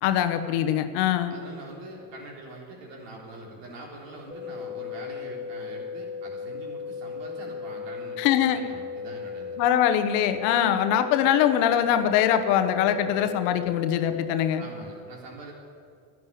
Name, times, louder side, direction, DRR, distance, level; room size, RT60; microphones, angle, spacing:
voice 1, 0.0-1.3 8.2-8.6 9.6-14.6, left 10 dB, 80° left, 9 dB, 1.1 m, -23 dB
voice 2, 1.3-8.2 8.5-9.6 14.6-15.5, right 1 dB, 70° right, -1 dB, 3.9 m, -43 dB
sound 1, 4.3-14.3, left 5 dB, 15° right, 2.0 m, -36 dB
11.5 x 10.5 x 9.3 m, 2.2 s
hypercardioid pair, 65°, 45 cm